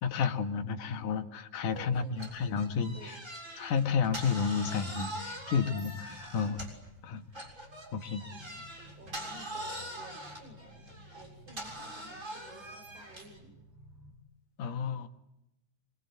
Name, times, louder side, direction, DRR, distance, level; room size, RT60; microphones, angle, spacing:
voice 1, 0.0-3.2 3.6-6.6 7.0-7.3 7.9-8.2 14.6-15.1, left 6 dB, 75° left, 6 dB, 3.3 m, -31 dB
voice 2, 1.7-2.5 2.9-3.2 8.3-8.6 9.0-13.5, right 2 dB, 65° right, 4 dB, 6.9 m, -53 dB
sound 1, 2.2-6.9 7.3-13.4, right 1 dB, 20° right, 7.2 m, -43 dB
sound 2, 4.1-14.1, equal, 45° right, 7.7 m, -56 dB
27.5 x 25.0 x 8.5 m, 0.89 s
omnidirectional pair, 3.7 m